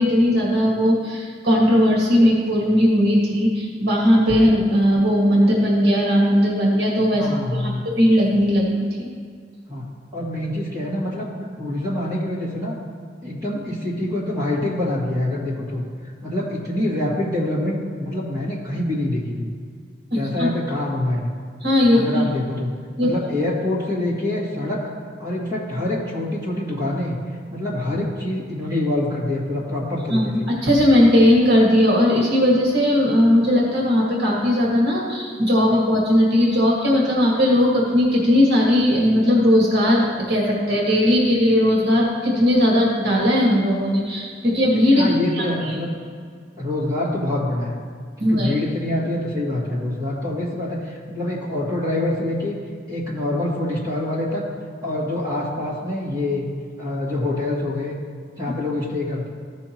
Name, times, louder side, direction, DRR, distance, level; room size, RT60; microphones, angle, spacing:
voice 1, 0.0-9.1 20.1-20.5 21.6-22.3 23.0-23.1 30.1-45.1 45.3-45.8 48.2-48.5, left 1 dB, 60° right, -4 dB, 1.9 m, -18 dB
voice 2, 7.1-7.8 9.7-11.3 11.6-12.8 13.2-15.8 16.2-19.5 20.1-21.3 21.9-22.7 23.0-24.8 25.2-27.1 27.5-30.5 45.0-45.9 46.6-47.8 48.2-52.6 52.9-54.5 54.8-56.4 56.8-58.0 58.4-59.3, left 1 dB, 20° right, -8 dB, 2.3 m, -25 dB
15.0 x 6.3 x 3.0 m, 2.1 s
head